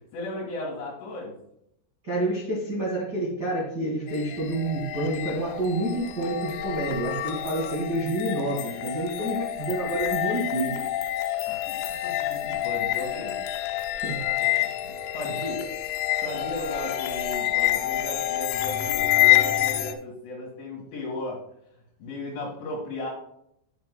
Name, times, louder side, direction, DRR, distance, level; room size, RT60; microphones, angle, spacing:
voice 1, 0.1-1.3 11.5-13.4 13.7-14.0 14.4-15.6 16.1-21.4 22.0-23.1, left 2 dB, 65° left, -4 dB, 3.8 m, -36 dB
voice 2, 2.0-10.8 14.0-14.2, right 1 dB, 50° right, -6 dB, 1.2 m, -28 dB
sound 1, 4.1-19.9, left 13 dB, 85° left, 2.9 m, -27 dB
14.5 x 5.7 x 2.2 m, 0.75 s
omnidirectional pair, 5.9 m